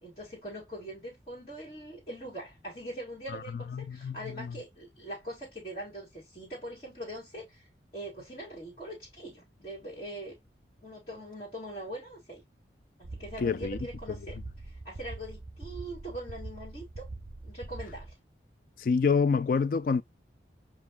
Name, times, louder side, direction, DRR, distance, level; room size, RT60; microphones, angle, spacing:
voice 1, 0.0-7.7 7.9-10.3 10.8-12.4 13.0-14.4 14.6-17.1 17.4-18.2, right 1 dB, 35° left, 1.9 m, -42 dB
voice 2, 3.3-4.6 13.4-13.8 18.8-20.0, left 5 dB, 50° left, 0.3 m, -28 dB
sound 1, 13.0-18.1, right 2 dB, 50° right, 0.6 m, -43 dB
7.2 x 2.5 x 2.2 m
head